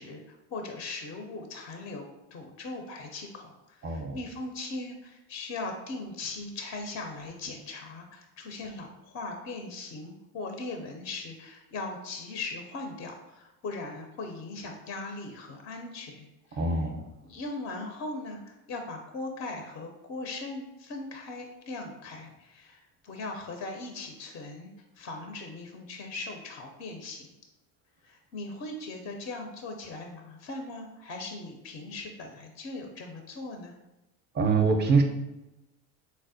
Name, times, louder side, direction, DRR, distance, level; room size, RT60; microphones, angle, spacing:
voice 1, 0.0-16.8 17.2-24.7 25.0-27.3 28.0-33.7, left 3 dB, 30° left, 4 dB, 0.4 m, -39 dB
voice 2, 3.8-4.2 16.6-17.0 34.3-35.0, right 4 dB, 25° right, 4 dB, 0.5 m, -24 dB
4.1 x 2.0 x 2.6 m, 0.98 s
hypercardioid pair, 80°, 46 cm